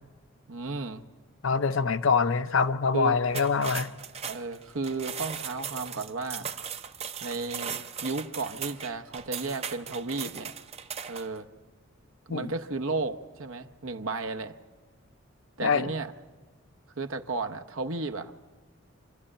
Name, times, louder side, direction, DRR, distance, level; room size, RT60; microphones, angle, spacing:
voice 1, 0.5-1.0 2.9-3.2 4.3-6.5 7.2-10.5 11.1-11.4 12.3-14.6 15.6-16.1 17.0-18.4, right 3 dB, 70° right, 6 dB, 0.9 m, -33 dB
voice 2, 1.4-3.9 12.3-12.5 15.6-15.9, left 5 dB, 65° left, 11 dB, 0.6 m, -25 dB
sound 1, 3.3-11.4, right 7 dB, 30° right, 0.6 m, -38 dB
26.5 x 12.0 x 8.7 m, 1.4 s
head